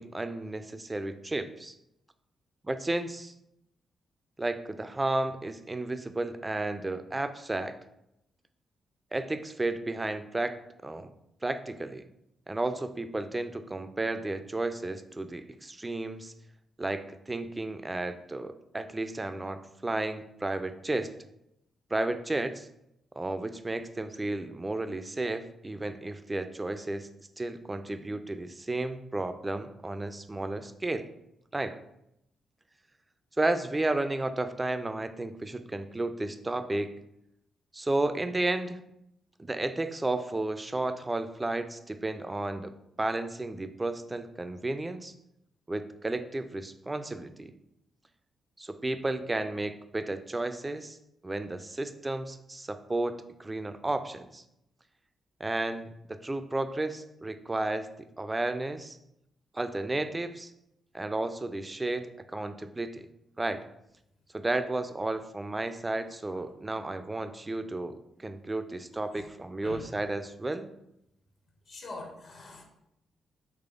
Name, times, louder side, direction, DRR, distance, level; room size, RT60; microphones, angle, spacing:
voice 1, 0.0-1.7 2.6-3.3 4.4-7.8 9.1-10.5 10.8-11.1 11.4-12.0 12.5-16.3 16.8-21.1 21.9-22.7 23.2-27.1 27.4-31.1 31.5-31.8 33.4-36.9 37.7-38.8 39.4-45.1 45.7-47.5 48.6-51.0 51.2-54.4 55.4-57.9 58.2-59.0 59.5-60.5 60.9-63.1 63.4-63.6 64.3-70.7, right 2 dB, 25° right, 10 dB, 0.3 m, -33 dB
voice 2, 71.7-72.6, left 3 dB, 60° left, 0 dB, 0.8 m, -44 dB
3.4 x 3.2 x 2.4 m, 0.82 s
hypercardioid pair, 40°, 0 cm